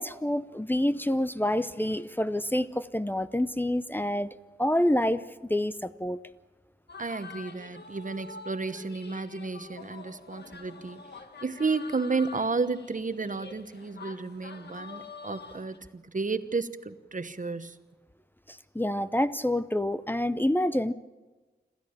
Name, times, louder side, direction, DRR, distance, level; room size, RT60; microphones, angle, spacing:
voice 1, 0.0-4.3 4.6-5.2 5.5-6.2 18.5-20.9, left 1 dB, 10° left, 13 dB, 0.7 m, -27 dB
sound 1, 6.9-15.8, left 4 dB, 75° left, 1.6 m, -46 dB
voice 2, 7.0-11.0 11.4-17.8, right 4 dB, 50° right, 11 dB, 1.1 m, -32 dB
26.5 x 14.0 x 8.8 m, 1.3 s
wide cardioid pair, 70°, 17 cm